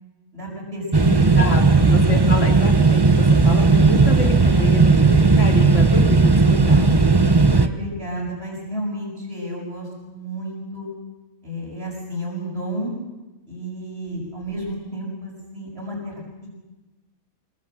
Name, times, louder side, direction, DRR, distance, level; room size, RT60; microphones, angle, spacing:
voice 1, 0.3-2.3 4.4-5.1 6.8-10.9 11.4-12.9 13.5-16.1 16.4-16.5, equal, 45° right, -6 dB, 6.3 m, -32 dB
sound 1, 0.9-7.7, right 3 dB, 20° right, 1.0 m, -15 dB
voice 2, 1.9-6.9, left 2 dB, 60° left, 2 dB, 3.6 m, -29 dB
26.0 x 23.0 x 7.7 m, 1.1 s
omnidirectional pair, 1.5 m